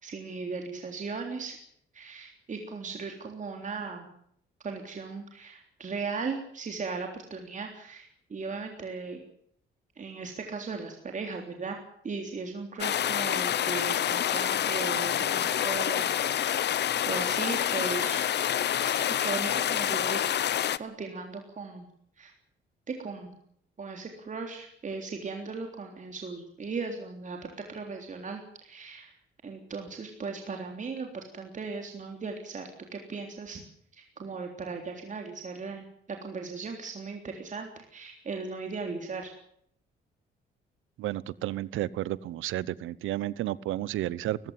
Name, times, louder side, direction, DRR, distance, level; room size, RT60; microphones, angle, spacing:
voice 1, 0.0-1.6 1.9-4.1 4.6-9.2 10.0-11.8 12.0-16.5 17.1-18.4 19.2-20.3 20.8-21.9 22.2-22.3 22.9-23.4 23.8-29.1 29.4-33.6 33.9-35.9 36.2-39.3, right 4 dB, 40° right, 3 dB, 3.5 m, -37 dB
sound 1, 12.8-20.8, left 10 dB, 60° left, 1.0 m, -27 dB
voice 2, 41.0-44.4, right 14 dB, 85° right, 20 dB, 0.9 m, -32 dB
19.0 x 16.0 x 9.5 m, 0.69 s
cardioid pair, 90°, 20 cm